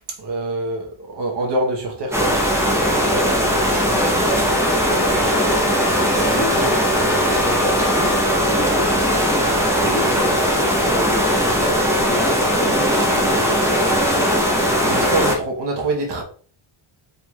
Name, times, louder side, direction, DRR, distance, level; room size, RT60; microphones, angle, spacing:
voice 1, 0.2-2.3 14.8-16.2, right 2 dB, 55° right, 1.1 m, -24 dB
sound 1, 2.1-15.4, equal, 5° right, 0.8 m, -19 dB
sound 2, 4.3-8.5, left 3 dB, 35° left, 2.0 m, -32 dB
voice 2, 4.3-7.9 8.4-14.5, right 1 dB, 20° left, 1.4 m, -32 dB
4.6 x 3.8 x 2.4 m
wide cardioid pair, 165°, 49 cm